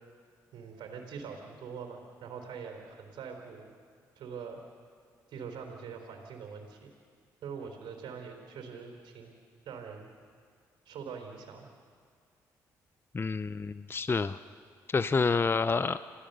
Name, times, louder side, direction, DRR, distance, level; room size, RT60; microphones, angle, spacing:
voice 1, 0.5-3.7 4.2-4.6 5.3-6.9 7.4-9.3 9.6-10.1 10.9-11.7, right 6 dB, 70° right, 2 dB, 3.8 m, -43 dB
voice 2, 13.1-14.4 14.9-16.0, left 4 dB, 30° left, 14 dB, 0.6 m, -28 dB
27.5 x 16.0 x 6.8 m, 2.1 s
supercardioid pair, 55°, 8 cm